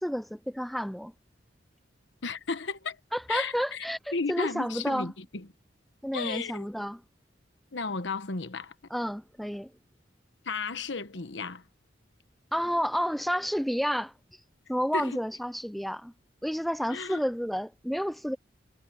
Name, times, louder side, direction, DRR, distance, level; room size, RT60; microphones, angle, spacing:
voice 1, 0.0-1.1 3.1-5.1 6.0-7.0 8.9-9.7 12.5-14.1 14.7-16.1 16.4-18.4, equal, ahead, 0.6 m, -30 dB
voice 2, 2.2-3.0 3.3-3.8 4.1-5.5 6.1-6.7 7.7-8.7 10.4-11.6 14.9-15.2 16.9-17.2, left 4 dB, 75° left, 1.2 m, -34 dB
head